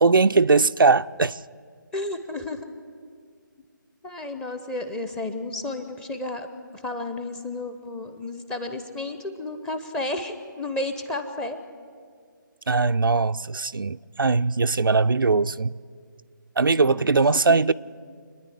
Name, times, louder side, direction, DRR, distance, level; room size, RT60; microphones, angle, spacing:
voice 1, 0.0-1.4 12.7-15.7 16.6-17.7, right 4 dB, 80° right, 0.4 m, -20 dB
voice 2, 1.9-2.6 4.0-6.5 6.8-11.6 16.7-17.2, left 2 dB, 5° left, 0.7 m, -32 dB
26.5 x 10.0 x 10.0 m
figure-of-eight pair, 150°, 11 cm